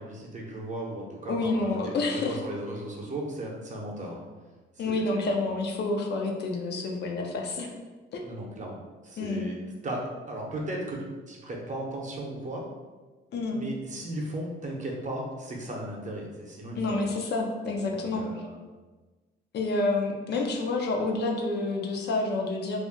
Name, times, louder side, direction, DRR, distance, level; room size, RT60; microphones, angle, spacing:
voice 1, 0.0-4.3 4.8-5.4 8.2-9.6 9.8-12.6 13.5-17.0 17.9-18.6, right 1 dB, 40° right, -1 dB, 0.7 m, -36 dB
voice 2, 1.3-2.4 4.8-7.7 8.1-8.2 9.2-9.5 13.3-13.6 16.8-18.2 19.5-22.8, left 3 dB, 60° left, 1 dB, 0.5 m, -28 dB
2.4 x 2.1 x 3.7 m, 1.3 s
cardioid pair, 90°, 20 cm